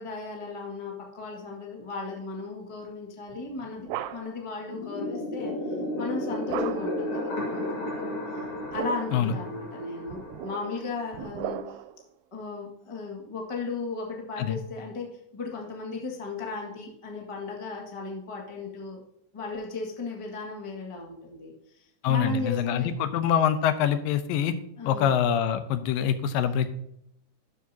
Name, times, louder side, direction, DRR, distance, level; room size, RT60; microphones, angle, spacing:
voice 1, 0.0-5.5 6.0-8.1 8.7-11.8 12.3-19.0 19.3-22.9 24.8-25.1, left 3 dB, 20° left, -1 dB, 0.7 m, -36 dB
sound 1, 3.3-4.5 6.5-7.1 8.5-9.3 10.1-12.0, right 11 dB, 85° right, 2.2 m, -37 dB
sound 2, 4.7-11.2, left 1 dB, 40° left, 2.7 m, -33 dB
voice 2, 22.0-24.6 24.8-26.7, left 8 dB, 85° left, 10 dB, 2.4 m, -25 dB
12.0 x 7.2 x 2.8 m, 0.76 s
omnidirectional pair, 4.0 m